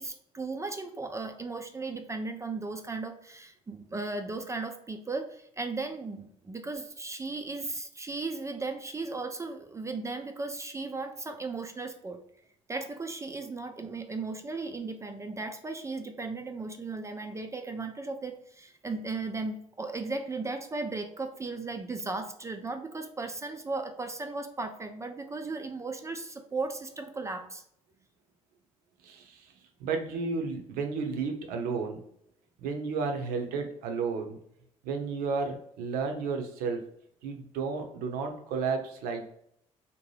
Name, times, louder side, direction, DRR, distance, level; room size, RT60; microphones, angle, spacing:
voice 1, 0.0-12.2 12.7-27.6, right 3 dB, 20° right, 6 dB, 0.4 m, -36 dB
voice 2, 29.0-29.4 29.8-32.0 32.6-34.4 34.8-36.8 37.2-39.3, right 4 dB, 65° right, 4 dB, 0.6 m, -32 dB
2.7 x 2.1 x 3.1 m, 0.71 s
hypercardioid pair, 50°, 16 cm